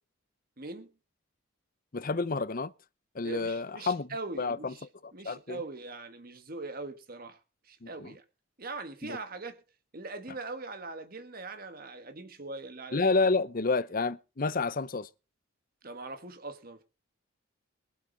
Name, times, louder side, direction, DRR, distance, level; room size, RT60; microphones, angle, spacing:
voice 1, 0.6-0.9 3.2-4.9 5.1-7.4 7.6-8.2 8.6-9.6 9.9-13.1 15.8-16.8, right 3 dB, 45° right, 1.5 m, -41 dB
voice 2, 1.9-2.7 3.1-4.7 5.0-5.6 7.8-8.1 9.0-9.2 12.9-15.1, left 3 dB, 40° left, 0.7 m, -30 dB
22.5 x 8.3 x 3.9 m
head